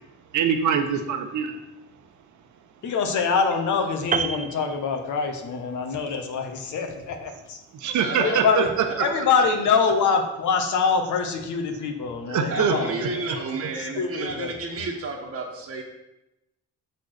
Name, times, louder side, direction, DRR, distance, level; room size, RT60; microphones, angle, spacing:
voice 1, 0.3-1.6 7.7-8.6 12.3-13.4 13.6-13.7, right 7 dB, 70° right, 6 dB, 1.0 m, -24 dB
voice 2, 2.8-7.6 8.2-8.7 9.0-13.2 13.7-14.9, left 5 dB, 75° left, 4 dB, 1.3 m, -25 dB
Piano, 4.1-5.6 5.8-6.1, right 6 dB, 25° right, 0.4 m, -29 dB
voice 3, 7.8-9.0 12.5-15.8, right 4 dB, 50° right, -2 dB, 1.3 m, -32 dB
6.6 x 4.2 x 6.5 m, 0.93 s
cardioid pair, 90°, 30 cm